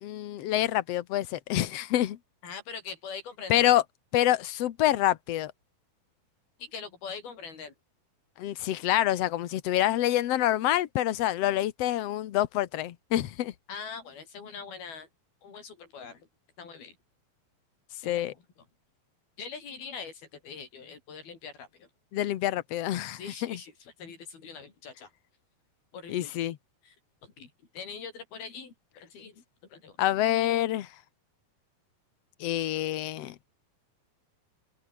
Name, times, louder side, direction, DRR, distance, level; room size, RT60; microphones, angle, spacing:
voice 1, 0.0-2.2 3.5-3.8 4.1-5.5 8.4-13.5 18.0-18.3 22.1-23.6 26.1-26.6 30.0-30.9 32.4-33.4, left 13 dB, 70° left, 1.6 m, -27 dB
voice 2, 2.4-3.7 6.6-7.7 13.7-15.1 15.4-16.3 16.6-17.0 18.0-18.2 19.4-21.9 23.1-25.1 25.9-26.3 26.9-27.0 27.2-29.4 29.7-30.0, left 5 dB, 85° left, 7.0 m, -43 dB
omnidirectional pair, 4.2 m